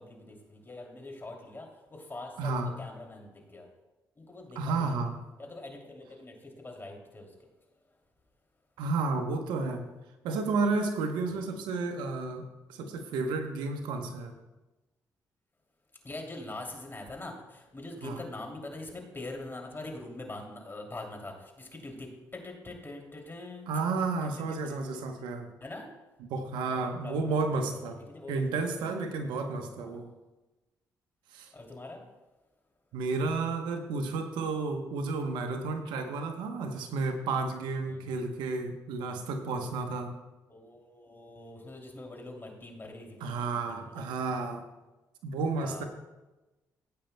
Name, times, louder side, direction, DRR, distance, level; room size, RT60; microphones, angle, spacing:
voice 1, 0.0-3.7 4.2-5.0 5.4-7.3 11.3-11.5 16.0-23.7 24.6-24.8 25.6-25.8 26.6-28.8 29.8-30.0 31.5-32.0 37.9-38.2 40.5-44.2 45.6-45.9, left 2 dB, 30° left, 1 dB, 2.7 m, -44 dB
voice 2, 2.4-2.7 4.6-5.2 8.8-9.9 10.2-14.3 18.0-18.2 23.7-25.5 26.3-28.0 28.3-30.1 31.3-31.5 32.9-40.1 43.2-44.6 45.2-45.8, right 3 dB, 90° right, 6 dB, 0.9 m, -32 dB
15.5 x 8.9 x 2.2 m, 1.1 s
supercardioid pair, 55°, 8 cm